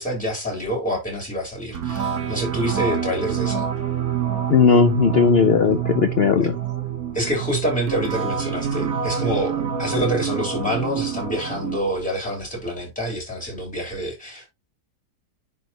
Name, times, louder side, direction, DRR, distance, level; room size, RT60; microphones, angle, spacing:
voice 1, 0.0-3.7 6.4-6.5 7.1-14.5, equal, 5° left, 3.6 m, -27 dB
sound 1, 1.7-11.8, right 8 dB, 55° right, 1.7 m, -27 dB
voice 2, 4.5-6.5, left 6 dB, 70° left, 0.5 m, -17 dB
10.5 x 3.5 x 2.9 m
omnidirectional pair, 1.9 m